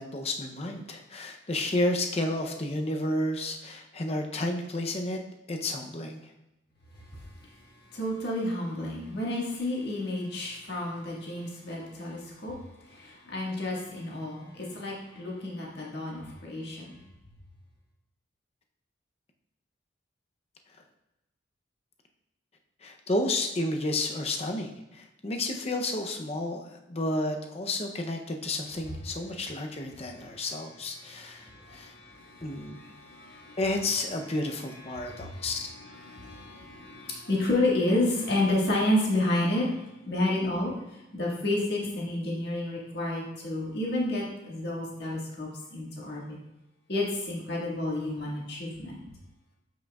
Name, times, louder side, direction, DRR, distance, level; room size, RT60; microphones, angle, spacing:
voice 1, 0.0-5.2 5.5-6.3 22.8-31.9 32.4-32.8 33.6-35.7, left 1 dB, 30° left, 4 dB, 0.6 m, -31 dB
voice 2, 7.9-12.5 12.9-17.0 31.2-33.6 34.9-35.5 35.8-39.8 40.0-46.4 46.9-49.0, left 1 dB, 55° left, -4 dB, 1.7 m, -30 dB
7.4 x 6.1 x 2.3 m, 0.94 s
head